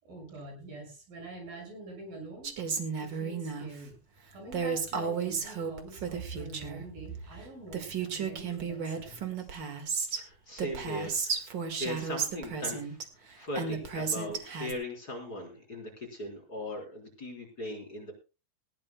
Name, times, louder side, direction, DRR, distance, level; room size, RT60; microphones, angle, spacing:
voice 1, 0.0-2.5 3.0-4.0 4.3-9.5, right 3 dB, 70° right, 3 dB, 7.8 m, -45 dB
Female speech woman speaking, 2.4-3.7 4.5-6.8 7.4-7.5 7.7-10.2 10.6-13.0 13.5-14.7, right 6 dB, 45° right, 1.7 m, -33 dB
voice 2, 10.1-11.5 11.8-13.0 13.4-18.1, left 1 dB, 25° left, 2 dB, 4.1 m, -39 dB
19.5 x 16.5 x 2.2 m, 0.30 s
omnidirectional pair, 4.2 m